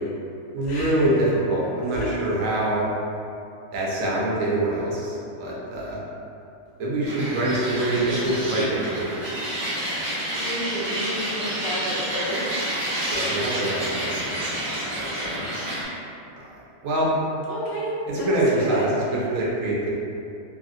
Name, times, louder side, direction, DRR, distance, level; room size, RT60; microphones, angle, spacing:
voice 1, 0.5-2.9 3.7-6.0 6.8-9.3 13.1-14.7 15.0-15.5 16.4-17.1 18.1-19.9, right 1 dB, 75° right, -5 dB, 1.0 m, -25 dB
sound 1, 7.0-15.8, right 1 dB, 45° right, 0.4 m, -29 dB
voice 2, 9.8-12.5 15.3-15.8 17.5-19.0, right 1 dB, 60° left, -7 dB, 0.8 m, -31 dB
2.9 x 2.5 x 2.5 m, 2.7 s
omnidirectional pair, 1.5 m